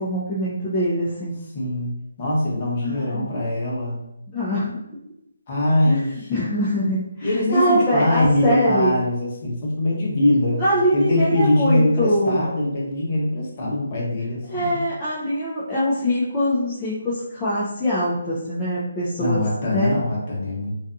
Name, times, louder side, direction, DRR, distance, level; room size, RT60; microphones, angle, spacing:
voice 1, 0.0-1.4 2.8-3.3 4.3-4.8 5.9-8.9 10.6-12.4 14.5-19.4 19.7-20.0, equal, 15° left, -9 dB, 0.5 m, -23 dB
voice 2, 1.5-4.0 5.5-6.3 7.2-10.6 10.9-14.8 19.2-20.7, left 1 dB, 35° left, -5 dB, 0.9 m, -22 dB
2.5 x 2.3 x 2.6 m, 0.81 s
figure-of-eight pair, 155°, 0 cm